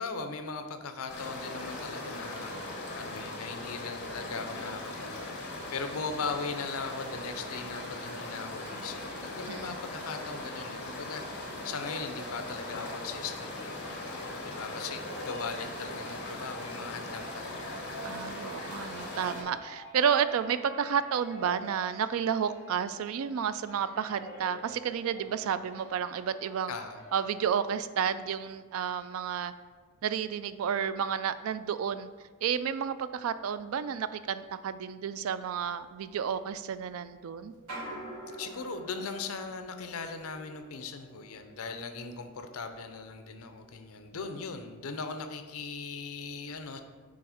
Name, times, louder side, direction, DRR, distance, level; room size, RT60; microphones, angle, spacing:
voice 1, 0.0-13.9 14.5-18.3 26.7-27.0 38.4-46.8, left 4 dB, 70° left, 7 dB, 0.6 m, -39 dB
sound 1, 1.1-19.4, left 2 dB, 50° left, 1.2 m, -39 dB
voice 2, 9.5-9.8 18.0-26.8 27.1-29.5 30.0-32.1 32.4-37.5, right 7 dB, 65° right, 13 dB, 0.3 m, -31 dB
sound 2, 11.6-28.3, right 1 dB, 10° right, 1.5 m, -49 dB
sound 3, 35.6-35.7 36.1-37.0 37.5-42.8 43.1-43.8 44.4-44.5, right 1 dB, 85° right, 1.6 m, -46 dB
6.3 x 3.5 x 4.9 m, 1.4 s
head